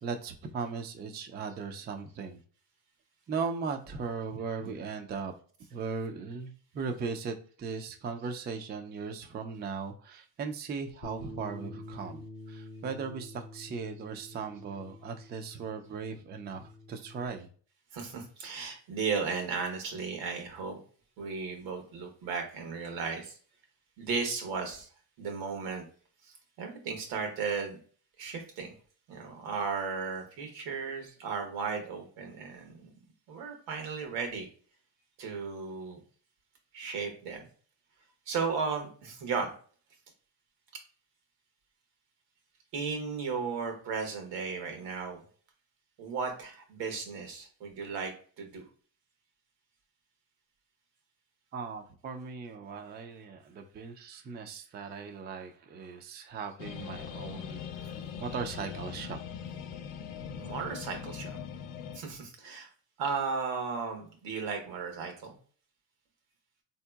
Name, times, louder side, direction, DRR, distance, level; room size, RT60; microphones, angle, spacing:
voice 1, 0.0-2.4 3.3-5.3 5.7-17.5 51.5-59.2, right 5 dB, 25° right, 5 dB, 0.4 m, -38 dB
Bass guitar, 11.0-17.3, left 2 dB, 30° left, 0.5 m, -47 dB
voice 2, 17.9-20.8 21.2-23.4 24.0-24.9 25.2-25.9 26.3-27.8 28.2-28.7 29.1-32.9 33.3-34.5 35.2-36.0 36.7-37.4 38.3-39.5 42.7-45.2 46.0-48.6 60.4-61.3 61.9-62.7 63.0-65.3, right 5 dB, 85° right, 4 dB, 1.1 m, -35 dB
sound 1, 56.6-62.0, left 7 dB, 80° left, 0.6 m, -41 dB
3.6 x 2.8 x 2.3 m, 0.44 s
cardioid pair, 100°, 46 cm